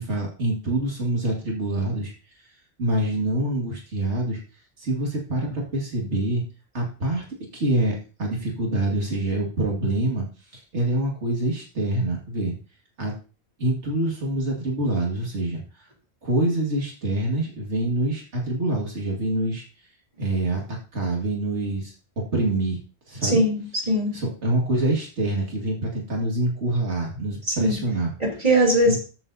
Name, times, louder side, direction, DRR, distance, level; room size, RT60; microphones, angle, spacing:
voice 1, 0.0-2.1 2.8-4.4 4.8-6.4 6.7-7.2 7.5-10.3 10.5-12.5 13.0-13.1 13.6-15.9 16.2-19.6 20.2-21.9 22.3-22.8 23.1-23.4 24.1-28.1 28.9-29.0, right 1 dB, 80° right, -1 dB, 2.4 m, -25 dB
voice 2, 23.2-24.2 27.5-27.8 28.2-29.0, equal, 35° right, -1 dB, 3.6 m, -21 dB
14.5 x 7.2 x 2.7 m, 0.36 s
omnidirectional pair, 1.2 m